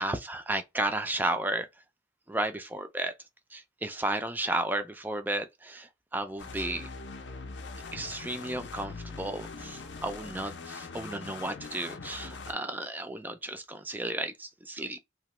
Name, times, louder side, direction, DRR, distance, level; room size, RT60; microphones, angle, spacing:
voice 1, 0.0-1.7 2.3-3.1 3.5-6.9 7.9-15.0, right 2 dB, 10° right, 0.3 m, -33 dB
sound 1, 6.4-12.5, left 4 dB, 65° left, 0.5 m, -42 dB
2.9 x 2.2 x 3.1 m
head